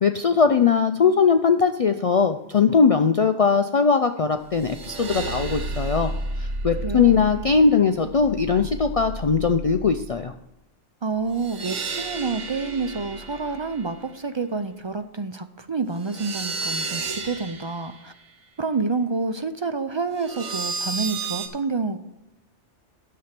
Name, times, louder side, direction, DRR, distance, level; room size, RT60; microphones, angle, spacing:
voice 1, 0.0-6.1 6.4-10.3, left 5 dB, 65° left, 7 dB, 0.3 m, -20 dB
sound 1, 4.4-10.3 11.2-14.1 16.0-18.0 20.2-21.5, right 3 dB, 90° right, 1.4 m, -32 dB
voice 2, 6.8-7.2 11.0-18.1 18.6-22.0, right 4 dB, 45° right, 9 dB, 0.3 m, -28 dB
9.6 x 6.8 x 5.9 m, 0.89 s
omnidirectional pair, 1.2 m